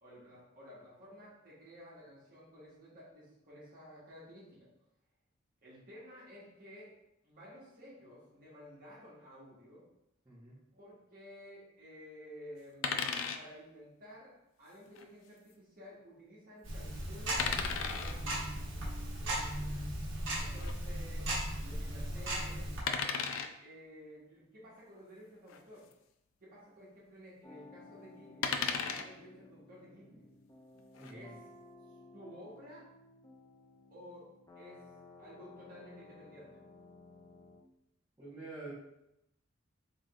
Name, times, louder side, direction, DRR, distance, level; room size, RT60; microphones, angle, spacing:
voice 1, 0.0-4.7 5.6-6.9 7.2-9.8 10.7-13.0 13.3-14.3 14.6-18.4 20.4-21.3 21.6-22.7 23.6-25.9 26.4-30.3 31.1-31.4 32.1-32.9 33.9-34.3 34.5-34.8 35.2-36.6, equal, 50° right, -7 dB, 1.4 m, -53 dB
voice 2, 10.2-10.6 19.2-19.7 31.0-31.3 38.2-38.7, right 2 dB, 15° right, -10 dB, 1.0 m, -49 dB
sound 1, 12.8-13.4 14.9-15.0 17.4-18.2 20.6-20.7 22.9-23.5 25.5-25.6 25.9-26.0 28.4-29.1 30.8-31.1, left 6 dB, 85° left, 0.3 m, -35 dB
Tick-tock, 16.6-22.8, right 1 dB, 70° right, 1.1 m, -37 dB
sound 2, 27.4-37.6, left 2 dB, 20° left, 0.4 m, -56 dB
4.0 x 3.6 x 2.3 m, 0.83 s
head